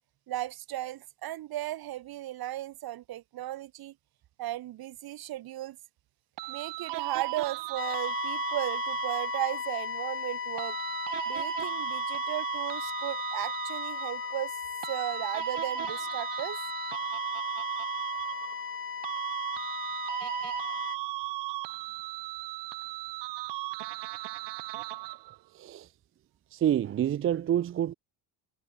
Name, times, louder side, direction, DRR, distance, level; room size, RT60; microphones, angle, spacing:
voice 1, 0.3-4.0 4.4-5.8 6.5-10.8 11.3-14.6 14.9-16.6, right 14 dB, 55° right, 1.9 m, -36 dB
sound 1, 6.4-9.7 10.6-14.4 14.8-18.8 19.0-25.4, right 19 dB, 75° right, 1.4 m, -36 dB
sound 2, 7.8-21.0, left 7 dB, 30° left, 3.1 m, -36 dB
voice 2, 25.5-25.9 26.5-27.9, right 10 dB, 30° right, 0.5 m, -27 dB
cardioid pair, 140°, 42 cm